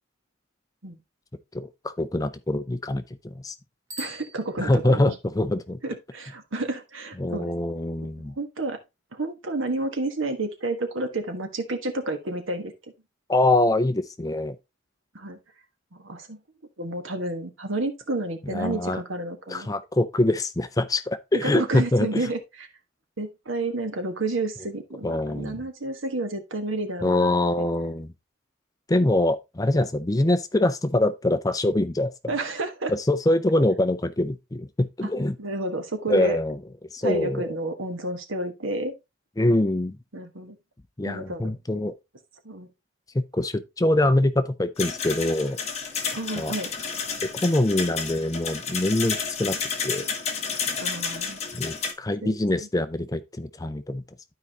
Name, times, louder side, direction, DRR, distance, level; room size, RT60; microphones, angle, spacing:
voice 1, 1.5-3.5 4.6-5.8 7.2-8.3 13.3-14.6 18.5-19.0 19.5-22.3 25.0-25.6 27.0-28.1 28.9-32.1 32.9-35.4 36.1-36.6 36.9-37.5 39.4-40.0 41.0-41.9 43.1-45.6 46.4-46.5 47.3-49.6 49.8-50.1 51.5-54.0, left 1 dB, 20° left, 0.5 m, -24 dB
Bicycle bell, 3.8-5.2, right 1 dB, 15° right, 0.7 m, -42 dB
voice 2, 4.0-5.1 5.8-7.5 8.4-8.8 9.1-12.7 15.1-15.4 15.9-16.4 16.8-19.7 21.4-22.7 23.2-27.7 32.3-32.9 35.4-36.4 37.0-38.9 40.1-40.6 41.0-41.5 42.4-42.7 46.1-46.7 50.8-51.4 52.2-52.3 52.6-52.7, right 2 dB, 75° right, 1.4 m, -30 dB
sound 1, 44.8-51.9, left 5 dB, 35° left, 1.3 m, -31 dB
12.0 x 4.8 x 2.9 m
head